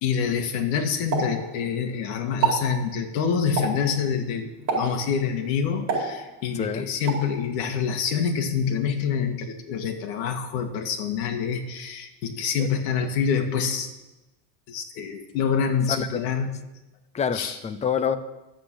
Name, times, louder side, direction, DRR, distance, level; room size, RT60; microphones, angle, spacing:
voice 1, 0.0-13.9 14.7-16.6 17.3-17.6, left 6 dB, 80° left, 5 dB, 2.0 m, -26 dB
Explosion, 1.1-2.0 2.3-2.7 3.6-3.9 4.7-5.1 5.9-6.6 7.1-7.3, right 5 dB, 35° right, 4.9 m, -27 dB
voice 2, 6.5-6.9 12.6-12.7 15.9-16.2 17.1-18.2, left 7 dB, 15° left, 12 dB, 0.4 m, -27 dB
11.5 x 7.9 x 8.4 m, 1.0 s
cardioid pair, 145°, 50 cm